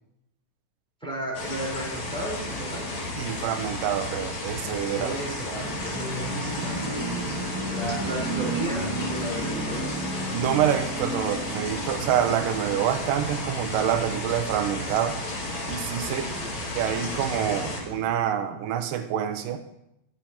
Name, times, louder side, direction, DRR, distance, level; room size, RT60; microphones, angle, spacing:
voice 1, 1.0-2.9 5.0-9.9 16.0-16.5, right 1 dB, ahead, -5 dB, 3.8 m, -35 dB
sound 1, 1.3-17.8, left 2 dB, 55° left, 3.5 m, -33 dB
voice 2, 3.2-5.2 10.3-15.2 15.7-16.3 16.8-19.6, right 9 dB, 85° right, 8 dB, 2.3 m, -27 dB
sound 2, 5.5-18.1, right 2 dB, 55° right, 3.0 m, -35 dB
19.0 x 7.0 x 2.9 m, 0.82 s
omnidirectional pair, 3.8 m